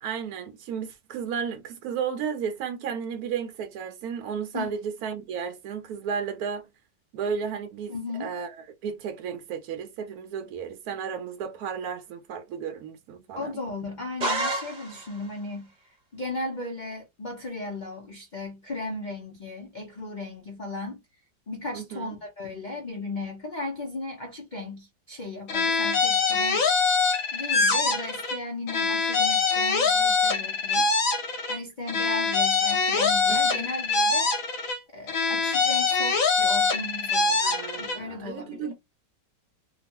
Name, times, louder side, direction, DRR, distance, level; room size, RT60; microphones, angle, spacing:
voice 1, 0.0-6.7 7.1-7.9 8.2-8.6 8.8-13.6 21.7-22.1 33.3-33.7 37.4-38.7, right 7 dB, 70° right, 0.9 m, -33 dB
voice 2, 7.9-8.3 13.4-21.0 21.5-26.7 27.3-30.9 31.5-34.3 34.9-38.7, left 2 dB, 80° left, 0.4 m, -36 dB
sound 1, 14.2-15.3, right 2 dB, 40° right, 0.7 m, -29 dB
sound 2, 25.5-28.4 28.7-31.6 31.9-34.8 35.1-38.0, left 4 dB, 60° left, 1.1 m, -24 dB
2.9 x 2.2 x 2.8 m
omnidirectional pair, 1.9 m